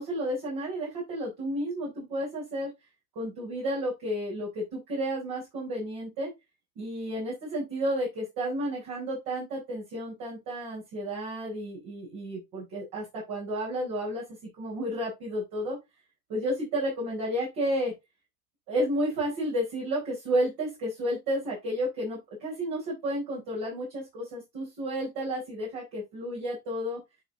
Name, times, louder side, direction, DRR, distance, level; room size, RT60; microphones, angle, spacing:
voice 1, 0.0-2.7 3.1-6.3 6.8-14.2 14.6-15.8 16.3-17.9 18.7-27.0, equal, 60° right, -4 dB, 4.4 m, -31 dB
9.0 x 4.3 x 3.8 m, 0.22 s
figure-of-eight pair, 65°, 45 cm